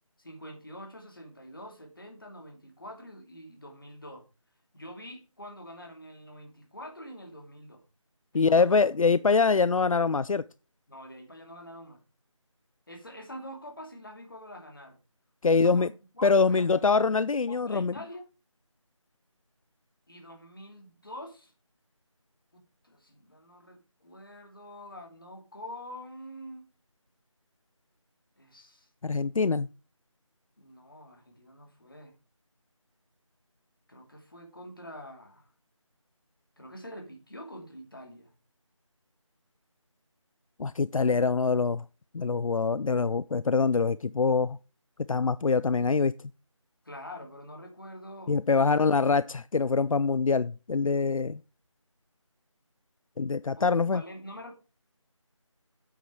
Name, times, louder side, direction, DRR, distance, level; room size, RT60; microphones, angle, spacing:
voice 1, 0.2-4.3 4.7-7.8 8.3-8.7 9.1-9.3 10.9-12.0 12.9-15.0 15.5-17.0 17.5-18.3 20.1-21.5 22.5-26.7 28.4-28.9 29.3-29.4 30.6-32.2 33.9-35.5 36.6-38.3 46.8-48.7 53.6-54.5, equal, 40° left, 2.6 m, -45 dB
voice 2, 8.3-10.4 15.4-15.9 16.2-17.9 29.0-29.7 40.6-41.8 42.1-44.6 45.1-46.1 48.3-51.4 53.2-54.0, left 4 dB, 80° left, 0.4 m, -24 dB
8.4 x 8.0 x 4.7 m
figure-of-eight pair, 180°, 17 cm